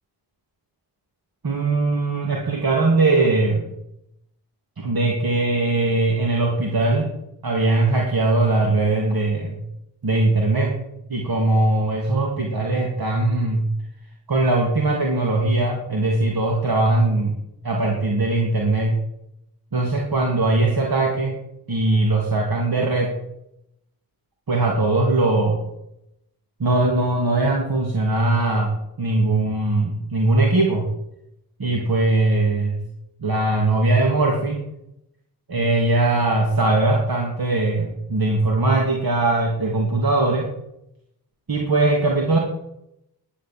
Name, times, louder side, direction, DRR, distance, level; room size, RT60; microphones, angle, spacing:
voice 1, 1.4-3.7 4.8-7.1 7.4-9.6 10.0-10.7 11.1-13.7 14.3-17.3 17.6-19.0 19.7-21.4 21.7-23.1 24.5-25.6 26.6-30.8 31.6-32.8 33.2-34.6 35.5-40.5 41.5-42.4, right 2 dB, 65° right, -1 dB, 2.9 m, -20 dB
11.0 x 10.0 x 7.7 m, 0.82 s
cardioid pair, 40°, 39 cm